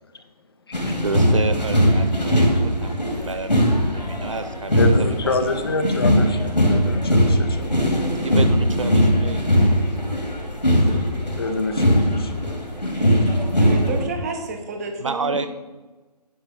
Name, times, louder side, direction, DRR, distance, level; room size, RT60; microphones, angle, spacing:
sound 1, 0.7-14.1, equal, 85° left, 2.4 m, -20 dB
voice 1, 1.0-5.4 8.0-9.8 15.0-15.5, right 4 dB, 50° right, 10 dB, 0.6 m, -30 dB
voice 2, 4.8-8.0 11.4-12.3 12.8-12.9, left 2 dB, 35° left, 8 dB, 0.6 m, -27 dB
voice 3, 12.9-15.5, right 3 dB, 25° right, 5 dB, 1.0 m, -31 dB
10.0 x 4.4 x 6.4 m, 1.2 s
figure-of-eight pair, 145°, 21 cm